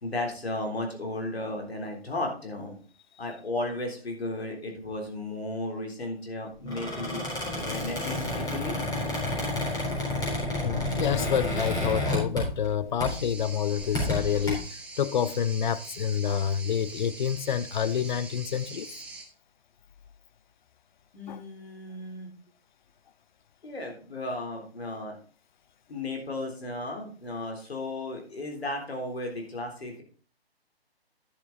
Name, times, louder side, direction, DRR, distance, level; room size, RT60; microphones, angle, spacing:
voice 1, 0.0-2.7 3.2-7.2 7.5-8.8 21.1-22.3 23.6-25.2 25.9-30.0, left 2 dB, 75° left, 3.7 m, -34 dB
Squeak, 6.6-12.7 13.0-13.3 13.8-14.5, left 1 dB, 10° left, 3.9 m, -30 dB
voice 2, 10.6-14.6 15.0-18.9 21.3-21.4, left 8 dB, 50° left, 0.6 m, -28 dB
sound 1, 13.0-19.2, right 3 dB, 5° right, 1.0 m, -43 dB
10.5 x 7.3 x 4.0 m
figure-of-eight pair, 140°, 31 cm